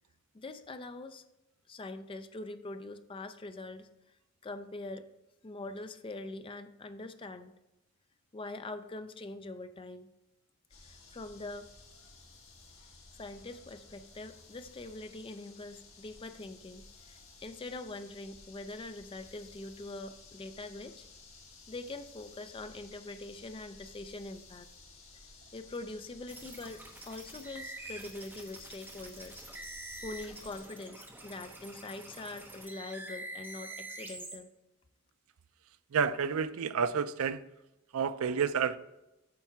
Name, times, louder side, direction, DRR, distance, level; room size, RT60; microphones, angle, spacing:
voice 1, 0.3-1.2 1.7-3.9 4.4-5.1 5.4-7.5 8.3-10.1 10.8-11.7 13.1-21.1 21.7-24.7 25.5-29.4 30.0-34.5, left 2 dB, 25° left, 9 dB, 0.4 m, -43 dB
sound 1, 10.7-30.6, left 3 dB, 65° left, 2.1 m, -55 dB
sound 2, 26.3-34.4, right 2 dB, 10° right, 1.1 m, -46 dB
voice 2, 35.9-37.4 37.9-38.8, right 6 dB, 85° right, 14 dB, 0.4 m, -30 dB
8.7 x 3.5 x 5.8 m, 0.95 s
head